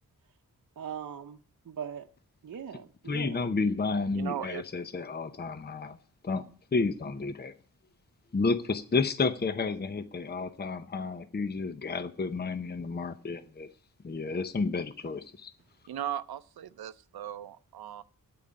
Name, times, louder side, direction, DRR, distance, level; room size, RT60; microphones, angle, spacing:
voice 1, 0.8-2.1 2.4-3.4, right 8 dB, 55° right, 0.9 m, -40 dB
voice 2, 3.1-6.0 6.2-6.5 6.7-7.5 8.3-13.7 14.0-15.5, left 4 dB, 25° left, 0.7 m, -31 dB
voice 3, 4.1-4.6 15.9-18.0, right 10 dB, 90° right, 0.6 m, -37 dB
9.1 x 8.6 x 9.7 m
wide cardioid pair, 145°, 36 cm